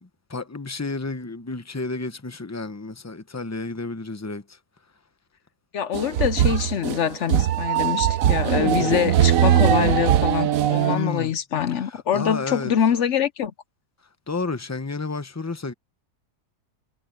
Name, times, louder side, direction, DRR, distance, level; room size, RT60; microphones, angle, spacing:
voice 1, 0.0-4.6 10.9-11.3 11.8-12.7 14.3-15.7, left 3 dB, 15° left, 0.6 m, -31 dB
voice 2, 5.7-13.5, left 9 dB, 65° left, 0.7 m, -24 dB
sound 1, 5.9-11.0, right 11 dB, 65° right, 1.0 m, -20 dB
omnidirectional pair, 1.8 m